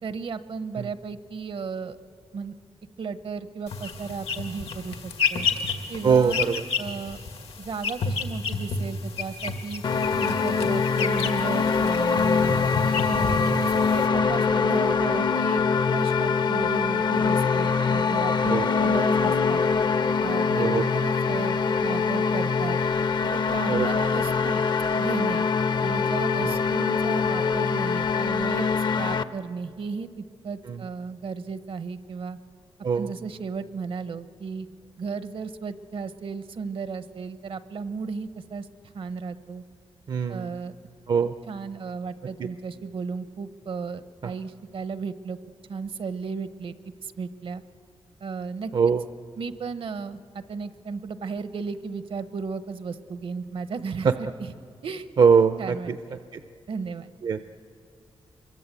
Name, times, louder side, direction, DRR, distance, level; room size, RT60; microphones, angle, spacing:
voice 1, 0.0-2.0 2.3-2.5 3.0-5.5 5.9-6.4 6.8-7.2 7.6-9.8 10.2-12.7 13.1-15.6 15.9-18.5 18.8-19.6 20.2-22.8 23.2-24.6 25.0-25.5 25.8-32.4 32.9-34.7 35.0-38.7 38.9-39.6 40.3-40.7 41.5-45.4 45.7-46.8 47.0-47.6 48.2-48.7 49.4-54.5 54.8-55.1 55.6-56.2 56.7-57.1, right 5 dB, 70° right, 12 dB, 0.9 m, -34 dB
sound 1, 3.7-14.1, left 5 dB, 85° left, 1.7 m, -31 dB
voice 2, 6.0-6.6 13.5-13.8 18.4-18.7 20.5-20.9 23.7-24.0 26.4-26.6 30.7-30.8 32.8-33.1 40.1-40.5 41.1-41.3 42.4-42.5 44.2-44.3 48.7-49.0 54.0-54.1 55.2-56.0 56.3-56.4 57.2-57.4, right 6 dB, 50° right, 10 dB, 0.5 m, -22 dB
sound 2, 9.8-29.2, left 5 dB, 50° left, 0.6 m, -23 dB
25.0 x 23.0 x 8.2 m, 2.4 s
wide cardioid pair, 155°, 10 cm